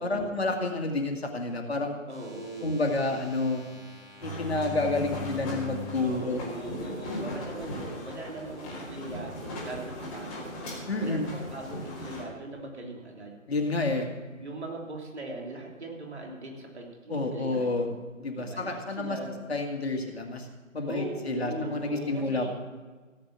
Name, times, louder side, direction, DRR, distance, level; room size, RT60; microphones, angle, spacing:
voice 1, 0.0-2.0 2.6-3.6 4.2-6.4 7.2-7.4 10.9-11.3 13.5-14.1 17.1-17.9 18.2-19.2 19.5-20.5 20.7-22.5, left 2 dB, 50° left, 2 dB, 2.0 m, -29 dB
sound 1, 2.1-6.0 6.7-6.8, left 4 dB, 10° right, 1.6 m, -42 dB
voice 2, 2.1-2.7 6.0-13.8 14.4-18.0 18.3-19.4 20.9-22.5, right 2 dB, 55° right, 0 dB, 3.3 m, -40 dB
sound 2, 4.2-12.2, left 1 dB, 10° left, 1.8 m, -39 dB
16.5 x 8.0 x 6.0 m, 1.4 s
figure-of-eight pair, 155°, 40 cm